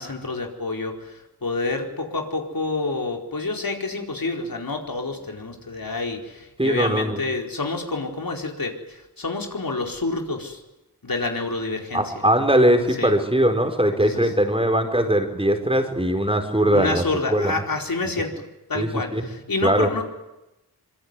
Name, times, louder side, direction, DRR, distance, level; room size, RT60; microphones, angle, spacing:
voice 1, 0.0-10.6 11.0-12.1 13.0-13.1 14.0-14.3 16.7-18.3 18.7-20.0, left 3 dB, 60° left, 2 dB, 4.6 m, -28 dB
voice 2, 6.6-7.2 11.9-17.0 17.3-17.5 18.2-18.3 18.7-19.2 19.6-19.9, right 1 dB, 15° right, 5 dB, 4.3 m, -20 dB
25.5 x 23.0 x 9.7 m, 0.96 s
wide cardioid pair, 70°, 39 cm